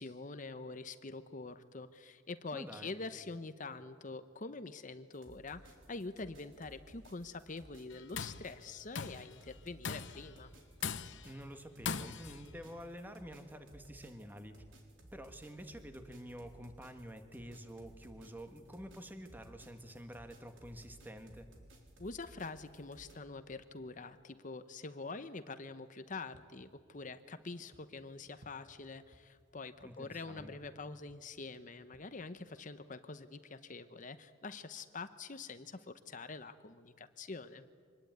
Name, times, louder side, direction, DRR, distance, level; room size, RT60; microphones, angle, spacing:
voice 1, 0.0-10.5 22.0-37.7, left 3 dB, 40° left, 11 dB, 0.8 m, -45 dB
voice 2, 2.5-2.9 11.2-14.6 15.1-21.5 29.8-30.8, equal, 10° right, 7 dB, 1.6 m, -49 dB
sound 1, 5.1-23.1, right 1 dB, 80° right, 4.0 m, -58 dB
Tools, 7.9-8.5 8.9-9.3 9.8-10.3 10.8-11.3 11.9-12.4, left 6 dB, 65° left, 0.9 m, -40 dB
sound 2, 25.9-32.5, right 1 dB, 60° right, 1.7 m, -66 dB
25.0 x 20.5 x 9.3 m, 2.1 s
head